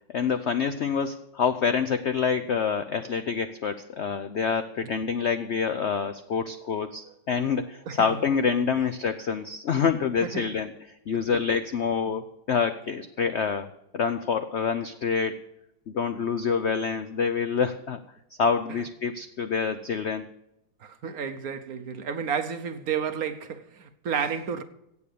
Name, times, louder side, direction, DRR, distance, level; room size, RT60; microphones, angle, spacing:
voice 1, 0.1-10.7 11.1-13.7 13.9-15.4 15.9-18.0 18.4-20.3, left 6 dB, 80° left, 0.6 m, -27 dB
voice 2, 20.8-24.6, right 7 dB, 60° right, 1.2 m, -31 dB
16.5 x 7.1 x 6.8 m
omnidirectional pair, 2.0 m